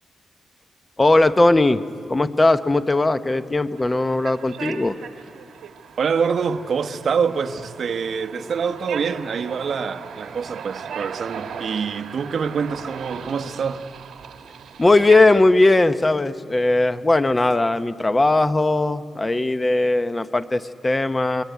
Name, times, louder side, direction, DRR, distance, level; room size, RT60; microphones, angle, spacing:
voice 1, 1.0-5.0 14.8-21.4, left 2 dB, 20° left, 0.8 m, -18 dB
sound 1, 3.7-15.4, right 7 dB, 80° right, 1.5 m, -38 dB
voice 2, 6.0-13.8, right 6 dB, 55° right, 1.2 m, -25 dB
27.5 x 21.5 x 9.3 m
cardioid pair, 120°, 0 cm